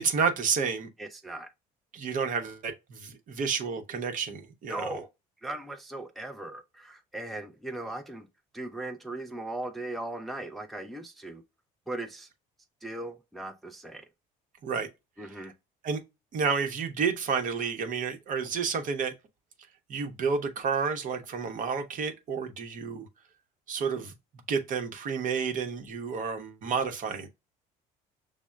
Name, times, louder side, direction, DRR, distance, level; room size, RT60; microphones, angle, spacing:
voice 1, 0.0-0.9 1.9-5.0 14.6-14.9 15.3-15.5 15.8-16.0 16.3-19.1 19.9-23.1 23.7-24.1 24.5-27.3, right 5 dB, 50° right, 0.8 m, -30 dB
voice 2, 1.0-1.5 4.7-5.1 5.4-8.3 8.5-11.4 11.9-12.3 12.8-14.0 15.2-15.5, right 2 dB, ahead, 0.4 m, -38 dB
6.0 x 2.1 x 2.2 m
supercardioid pair, 95°, 17 cm